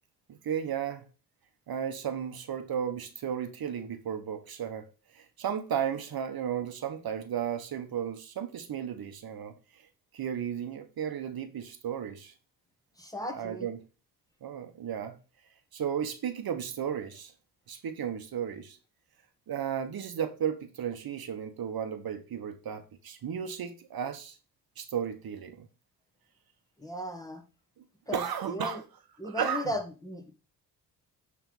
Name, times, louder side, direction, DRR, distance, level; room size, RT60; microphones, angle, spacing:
voice 1, 0.3-1.1 1.7-4.9 5.1-9.8 10.1-12.3 13.3-13.8 14.4-15.2 15.7-17.3 17.7-18.8 19.5-24.4 24.8-25.7 27.8-27.9 28.1-28.8 29.2-29.7, right 8 dB, 55° right, 1.2 m, -34 dB
voice 2, 13.0-13.7 26.8-27.4 28.1-28.2 28.5-28.8 29.2-30.3, equal, 10° left, 1.8 m, -35 dB
8.9 x 3.7 x 5.4 m
supercardioid pair, 65°, 43 cm